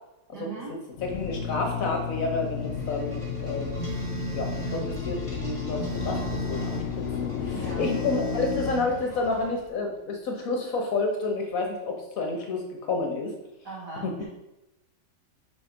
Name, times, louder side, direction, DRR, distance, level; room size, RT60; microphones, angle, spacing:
voice 1, 0.3-0.7 7.5-7.9 13.6-14.2, right 4 dB, 70° right, -7 dB, 3.2 m, -39 dB
Drill, 0.9-9.6, left 8 dB, 85° left, 0.6 m, -33 dB
voice 2, 1.0-3.7 4.3-13.3 14.0-14.2, left 3 dB, 60° left, 1 dB, 1.3 m, -30 dB
sound 1, 2.4-9.9, right 1 dB, 20° right, 1.6 m, -40 dB
Telephone, 3.8-4.9 5.8-6.9 7.8-8.9, right 5 dB, 55° right, 3.0 m, -36 dB
5.2 x 4.3 x 5.1 m, 0.94 s
omnidirectional pair, 1.8 m